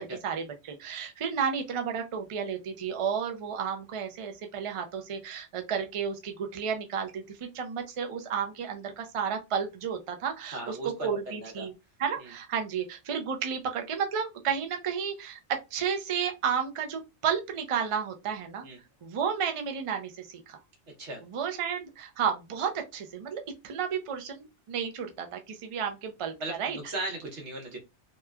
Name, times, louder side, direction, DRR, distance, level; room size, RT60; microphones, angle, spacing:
voice 1, 0.0-11.7 12.0-18.7 19.0-20.6 21.3-26.8, right 7 dB, 55° right, 5 dB, 0.3 m, -32 dB
voice 2, 10.5-11.7 12.2-12.3 18.6-18.8 21.0-21.2 26.4-27.8, right 1 dB, 85° right, 2 dB, 1.2 m, -37 dB
3.0 x 2.1 x 2.2 m, 0.24 s
omnidirectional pair, 1.2 m